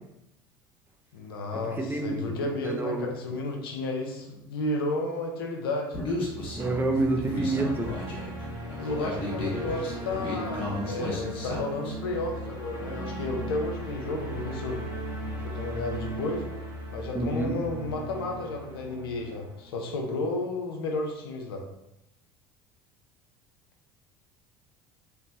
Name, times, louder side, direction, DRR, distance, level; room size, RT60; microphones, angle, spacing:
voice 1, 1.1-6.0 8.8-14.8 15.4-16.4 16.9-21.6, left 2 dB, 85° left, 1 dB, 0.5 m, -32 dB
voice 2, 1.8-3.1 6.6-7.9 17.1-17.6, right 2 dB, 20° right, 3 dB, 0.5 m, -28 dB
Human voice, 5.9-11.9, left 2 dB, 50° left, 0.9 m, -34 dB
sound 1, 6.1-20.2, right 1 dB, 55° right, 1.5 m, -38 dB
3.2 x 2.0 x 2.6 m, 0.85 s
hypercardioid pair, 75°, 12 cm